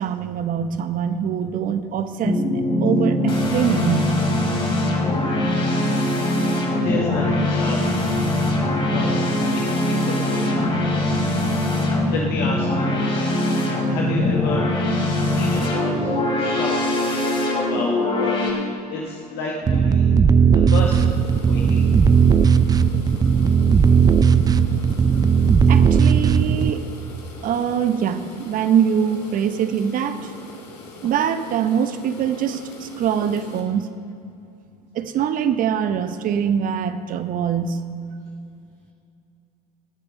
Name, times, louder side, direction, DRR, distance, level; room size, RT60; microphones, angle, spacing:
voice 1, 0.0-2.4 2.8-4.1 25.7-26.9 27.4-30.3 31.0-33.9 34.9-37.8, right 8 dB, 40° right, 10 dB, 0.9 m, -23 dB
sound 1, 2.2-18.5, left 1 dB, 25° left, 3.5 m, -22 dB
voice 2, 6.8-8.1 8.8-9.2 9.5-10.5 12.1-13.2 13.9-14.7 15.3-16.1 16.4-18.3 18.9-20.1 20.7-21.1 21.5-21.9, left 3 dB, 50° left, -2 dB, 1.5 m, -30 dB
sound 2, 19.7-26.7, right 6 dB, 20° right, 0.4 m, -16 dB
sound 3, 20.7-33.6, left 3 dB, 75° left, 2.1 m, -42 dB
19.0 x 6.8 x 5.3 m, 2.5 s
hypercardioid pair, 70°, 21 cm